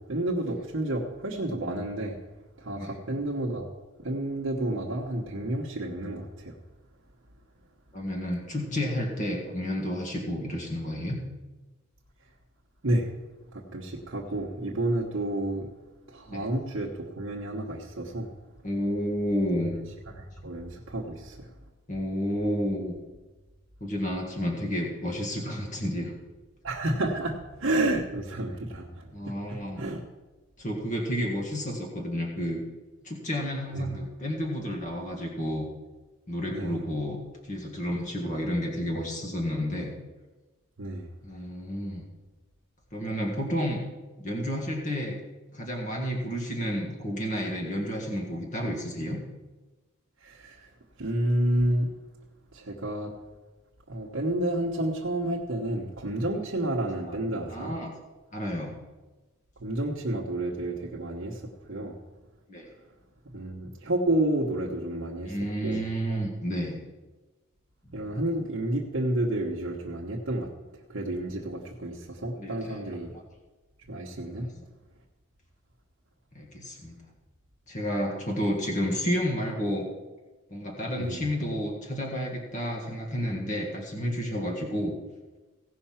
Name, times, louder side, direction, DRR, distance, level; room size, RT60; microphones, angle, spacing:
voice 1, 0.0-2.1 2.6-3.7 4.0-6.5 12.8-13.1 13.7-15.7 16.1-16.9 17.2-18.3 20.2-21.5 26.6-29.0 29.5-30.0 33.7-33.8 36.5-36.8 40.8-41.0 50.2-50.5 51.0-51.9 52.5-53.1 53.9-57.7 59.6-61.4 61.7-61.9 63.3-65.3 65.6-65.8 67.9-70.5 70.9-72.0 72.2-73.1 73.9-74.5 81.0-81.2, right 1 dB, 60° right, -3 dB, 1.2 m, -30 dB
voice 2, 7.9-11.2 16.3-16.4 18.6-19.7 21.9-22.9 23.8-26.1 29.1-29.8 30.6-32.6 33.0-35.7 36.3-37.2 37.4-39.9 41.2-42.1 42.9-43.8 44.2-45.2 45.5-49.2 57.0-57.2 57.5-57.9 58.3-58.8 62.5-62.7 65.2-66.8 68.0-68.1 72.4-72.8 73.1-73.2 74.2-74.6 76.3-76.9 77.7-79.9 80.5-85.0, equal, 35° left, 0 dB, 1.7 m, -31 dB
16.5 x 5.7 x 5.8 m, 1.2 s
head